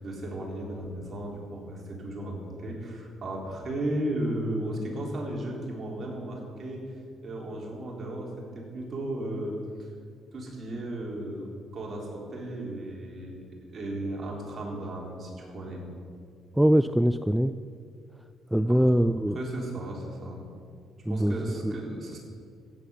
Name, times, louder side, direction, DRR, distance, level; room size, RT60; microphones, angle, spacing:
voice 1, 0.0-6.9 7.2-9.9 10.3-13.5 13.7-15.8 18.7-18.9 19.3-20.4 21.1-22.2, right 1 dB, 40° right, -2 dB, 3.8 m, -35 dB
voice 2, 16.6-17.5 18.5-19.4 21.1-21.3 21.6-21.7, equal, 5° right, 11 dB, 0.3 m, -22 dB
16.0 x 7.2 x 7.0 m, 2.2 s
cardioid pair, 105°, 0 cm